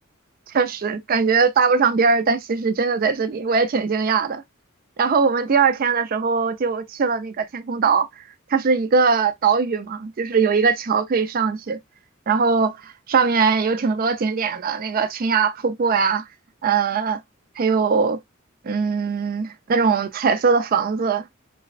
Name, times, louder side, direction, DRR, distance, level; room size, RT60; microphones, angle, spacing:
voice 1, 0.5-4.4 5.0-8.2 8.5-11.8 12.3-16.3 16.6-17.2 17.6-18.2 18.6-21.2, right 5 dB, 45° right, 0.4 m, -21 dB
3.9 x 2.2 x 2.3 m
head